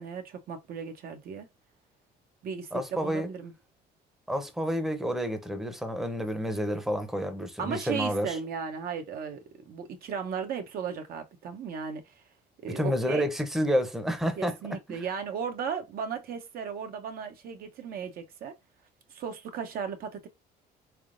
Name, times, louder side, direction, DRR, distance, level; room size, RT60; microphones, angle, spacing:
voice 1, 0.0-1.5 2.4-3.5 7.6-12.2 12.6-13.3 14.4-18.5 19.1-20.3, right 6 dB, 60° right, 0.7 m, -36 dB
voice 2, 2.7-3.3 4.3-8.4 12.7-15.0, equal, ahead, 0.7 m, -29 dB
3.6 x 3.4 x 2.5 m
cardioid pair, 110°, 17 cm